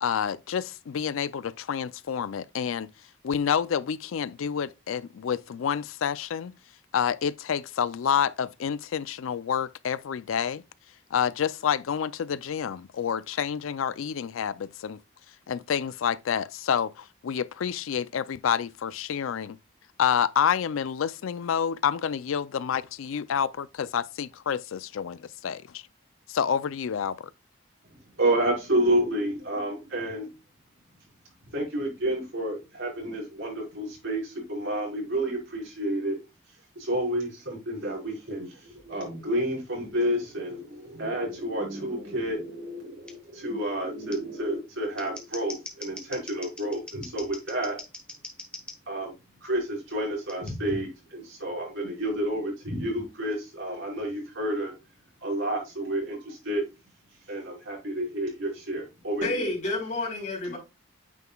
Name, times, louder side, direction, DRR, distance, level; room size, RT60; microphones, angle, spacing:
voice 1, 0.0-2.9 3.2-6.5 6.9-10.6 11.1-15.0 15.5-19.6 20.0-25.8 26.3-27.3, left 7 dB, 85° left, 0.4 m, -28 dB
voice 2, 28.2-30.3 31.5-36.2 36.7-47.8 48.9-49.1 49.4-54.7 55.2-56.6 57.3-59.4 60.4-60.5, right 1 dB, 75° right, 4.8 m, -30 dB
Scissors, 43.1-43.2 44.1-44.2 44.8-48.8 50.3-50.5, left 2 dB, 5° left, 1.2 m, -42 dB
voice 3, 59.2-60.6, left 2 dB, 35° left, 4.0 m, -29 dB
9.2 x 5.6 x 2.3 m
head